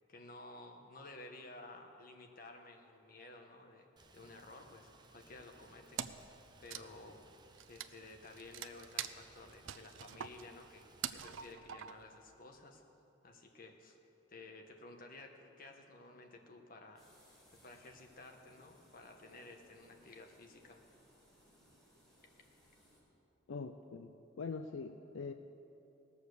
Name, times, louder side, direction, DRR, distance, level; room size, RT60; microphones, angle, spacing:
voice 1, 0.1-6.3 6.6-7.2 7.7-10.8 11.1-12.8 13.2-14.0 14.3-17.1 17.6-20.8, left 2 dB, 45° left, 3 dB, 1.2 m, -54 dB
Rain, 4.0-11.5, right 3 dB, 20° right, 0.7 m, -63 dB
Wood, 6.0-6.3 6.6-12.2, right 9 dB, 85° right, 0.5 m, -44 dB
sound 1, 17.0-23.0, equal, 5° left, 3.9 m, -67 dB
voice 2, 23.5-25.3, left 4 dB, 80° left, 8 dB, 0.5 m, -43 dB
18.0 x 7.1 x 6.6 m, 2.9 s
head